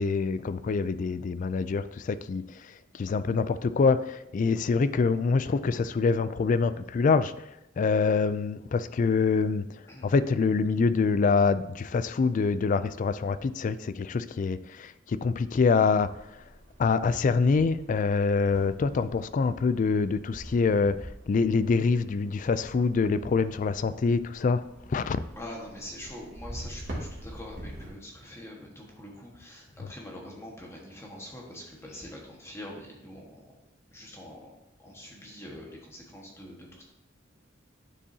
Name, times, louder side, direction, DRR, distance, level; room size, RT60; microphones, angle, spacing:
voice 1, 0.0-16.4 16.8-25.2, left 4 dB, 40° left, 14 dB, 0.3 m, -25 dB
sound 1, 15.9-27.9, equal, 65° right, 2.2 m, -45 dB
voice 2, 25.3-33.6 33.9-34.5 34.8-36.8, left 1 dB, 15° left, -2 dB, 1.5 m, -44 dB
9.9 x 7.0 x 2.8 m, 0.86 s
head